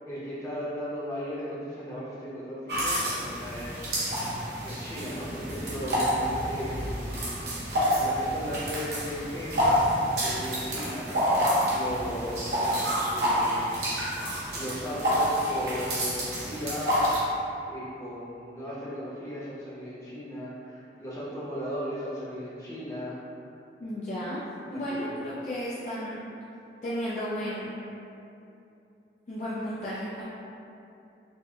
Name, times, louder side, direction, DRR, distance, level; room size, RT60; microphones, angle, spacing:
voice 1, 0.1-4.0 4.3-7.4 7.7-9.6 10.1-13.8 14.1-14.3 14.5-17.0 17.7-23.2 24.7-25.1, equal, 15° left, -10 dB, 0.7 m, -37 dB
sound 1, 2.7-17.2, equal, 70° right, 0.7 m, -28 dB
voice 2, 23.8-24.4 24.7-26.2 26.8-27.8 29.3-30.2, equal, 40° left, -8 dB, 0.3 m, -33 dB
4.2 x 2.1 x 2.3 m, 2.7 s
head